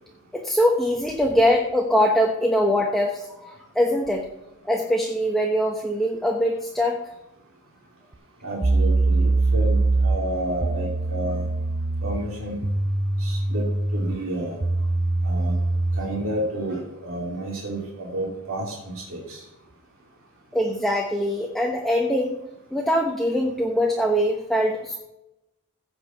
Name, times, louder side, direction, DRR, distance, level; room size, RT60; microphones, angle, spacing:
voice 1, 0.3-4.2 4.7-7.0 20.5-22.4 22.7-25.0, equal, ahead, 0 dB, 1.0 m, -22 dB
sound 1, 8.1-8.2 8.6-16.1, right 2 dB, 25° right, 0.5 m, -23 dB
voice 2, 8.4-11.5 12.0-12.6 13.2-13.7 13.9-14.6 15.2-15.5 16.0-19.4, right 1 dB, 65° right, -4 dB, 3.0 m, -30 dB
16.0 x 5.3 x 7.0 m, 0.92 s
head